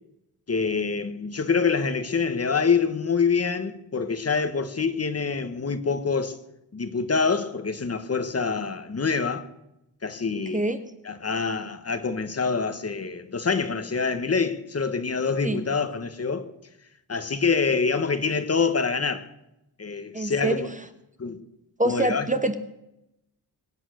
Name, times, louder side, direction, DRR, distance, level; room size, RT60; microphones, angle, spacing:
voice 1, 0.5-6.4 6.7-9.5 10.0-10.6 11.0-16.5 17.1-19.3 19.8-20.7 21.2-21.4 21.8-22.3, left 5 dB, 35° left, 1.3 m, -26 dB
voice 2, 20.1-20.6 21.8-22.5, right 2 dB, 20° right, 1.1 m, -25 dB
23.0 x 9.2 x 6.3 m
wide cardioid pair, 135°, 40 cm